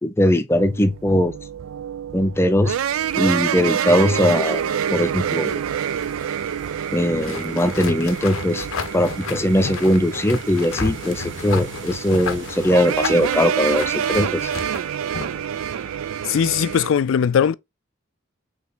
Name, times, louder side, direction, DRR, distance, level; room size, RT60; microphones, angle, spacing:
voice 1, 0.0-1.3 2.1-2.8 3.2-4.6 4.9-5.6 6.9-8.7 8.9-14.5, left 1 dB, 10° left, 0.5 m, -20 dB
sound 1, 0.6-16.9, right 8 dB, 85° right, 0.4 m, -27 dB
sound 2, 3.0-14.2, right 4 dB, 60° right, 1.0 m, -42 dB
sound 3, 7.2-15.4, left 5 dB, 85° left, 0.7 m, -32 dB
voice 2, 16.2-17.5, left 8 dB, 65° left, 0.3 m, -19 dB
3.9 x 3.4 x 3.8 m
head